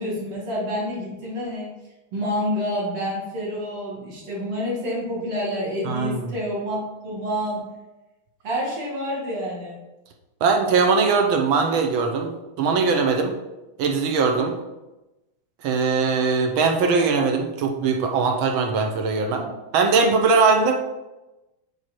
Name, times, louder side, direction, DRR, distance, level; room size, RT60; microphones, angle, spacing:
voice 1, 0.0-1.7 2.1-7.6 8.4-9.8 19.2-19.5, equal, 90° right, -6 dB, 2.9 m, -28 dB
voice 2, 5.8-6.3 10.4-13.3 13.8-14.5 15.6-19.4 19.7-20.7, right 4 dB, 70° right, 4 dB, 1.6 m, -21 dB
8.7 x 3.7 x 4.5 m, 1.0 s
omnidirectional pair, 2.3 m